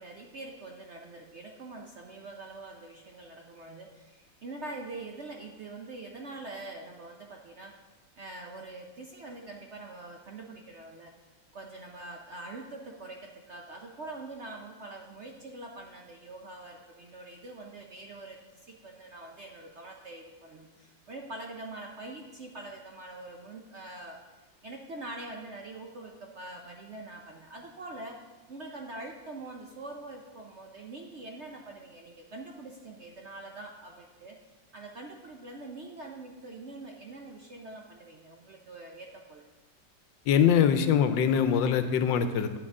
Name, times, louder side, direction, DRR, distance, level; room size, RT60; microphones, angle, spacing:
voice 1, 0.0-7.7 8.2-11.1 11.5-24.2 24.6-28.2 28.5-34.4 34.7-39.4, right 2 dB, 60° right, 1 dB, 0.7 m, -44 dB
voice 2, 40.3-42.6, left 8 dB, 85° left, 10 dB, 1.3 m, -23 dB
9.5 x 8.6 x 3.6 m, 1.2 s
omnidirectional pair, 2.0 m